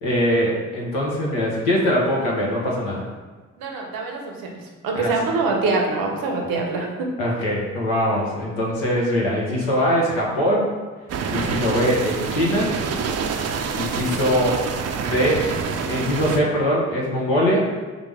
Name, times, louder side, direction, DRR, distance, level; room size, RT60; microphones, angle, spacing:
voice 1, 0.0-3.1 4.9-5.1 7.2-10.7 11.3-12.7 13.7-14.6 15.0-15.4 15.8-17.7, equal, 85° left, -4 dB, 0.9 m, -22 dB
voice 2, 3.6-4.6 4.8-7.1, right 3 dB, 75° right, 1 dB, 0.8 m, -24 dB
sound 1, 11.1-16.4, right 6 dB, 45° right, 0.4 m, -27 dB
4.9 x 2.1 x 3.4 m, 1.3 s
hypercardioid pair, 45°, 35 cm